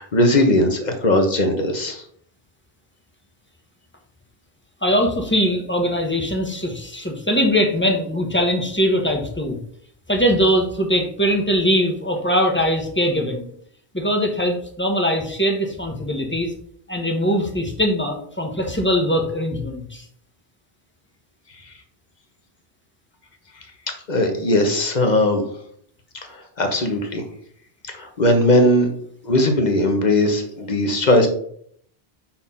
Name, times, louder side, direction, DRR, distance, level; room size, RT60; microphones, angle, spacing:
voice 1, 0.0-2.0 24.1-25.5 26.2-27.2 27.9-28.9 29.2-31.3, left 1 dB, 45° left, 4 dB, 1.3 m, -19 dB
voice 2, 4.8-9.6 10.1-13.5 13.9-16.5 16.9-20.0, equal, 10° left, 2 dB, 1.1 m, -21 dB
5.7 x 4.4 x 5.6 m, 0.64 s
omnidirectional pair, 1.1 m